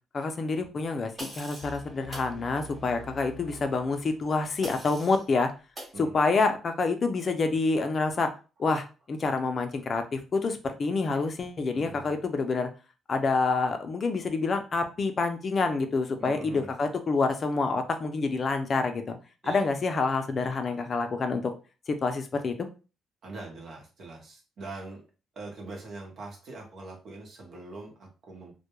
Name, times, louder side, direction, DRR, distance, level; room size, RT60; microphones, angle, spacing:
voice 1, 0.1-5.5 6.0-8.3 8.6-12.7 13.1-19.2 19.5-21.5 21.9-22.5, left 4 dB, 45° left, 7 dB, 0.4 m, -27 dB
sound 1, 1.2-1.8 2.1-2.3 4.6-5.2 5.8-6.0, right 1 dB, 30° right, 1.1 m, -42 dB
sound 2, 1.6-4.6, right 1 dB, 15° left, 1.1 m, -47 dB
voice 2, 11.7-12.2 16.2-16.7 19.4-19.6 23.2-25.0 25.3-28.5, right 2 dB, 60° right, 1 dB, 0.9 m, -42 dB
2.2 x 2.1 x 2.9 m, 0.33 s
cardioid pair, 90°, 0 cm